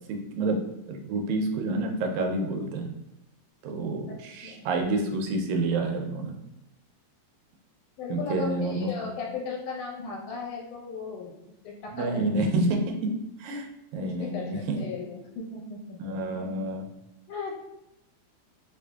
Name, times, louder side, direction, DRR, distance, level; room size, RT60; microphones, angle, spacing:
voice 1, 0.1-0.6 0.9-2.9 3.6-6.4 8.1-8.9 11.9-13.1 13.4-13.7 13.9-14.8 16.0-16.9, right 2 dB, 80° right, 3 dB, 1.9 m, -28 dB
voice 2, 8.0-11.4 11.6-12.5 14.0-16.2 17.3-17.5, left 5 dB, 85° left, -1 dB, 2.2 m, -36 dB
5.0 x 2.5 x 2.2 m, 0.86 s
omnidirectional pair, 3.4 m